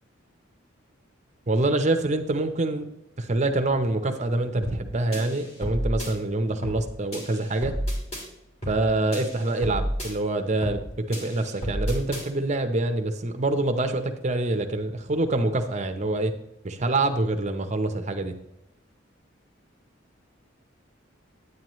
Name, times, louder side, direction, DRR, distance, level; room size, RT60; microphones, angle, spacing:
voice 1, 1.5-2.9 3.2-7.8 8.7-16.3 16.6-18.3, right 2 dB, 35° right, 7 dB, 0.8 m, -26 dB
sound 1, 4.6-4.9 5.1-6.1 6.6-6.9 7.1-8.2 8.6-8.9 9.1-10.1 10.6-10.9 11.1-12.2, equal, 30° left, 2.8 m, -31 dB
9.5 x 9.2 x 3.1 m, 0.86 s
head